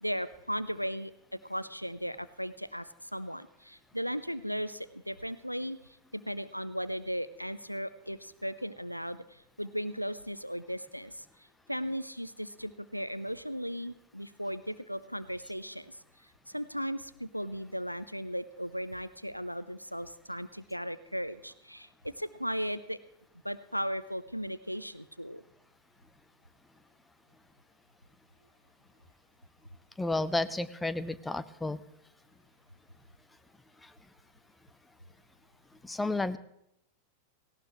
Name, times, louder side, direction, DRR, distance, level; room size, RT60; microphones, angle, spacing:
voice 1, 0.0-11.3 11.7-16.0 16.5-23.0 23.4-25.4, equal, 90° left, 15 dB, 0.5 m, -37 dB
voice 2, 30.0-31.8 33.8-33.9 35.8-36.4, left 2 dB, 5° left, 14 dB, 0.6 m, -32 dB
18.0 x 17.0 x 3.1 m, 0.76 s
figure-of-eight pair, 90°, 0 cm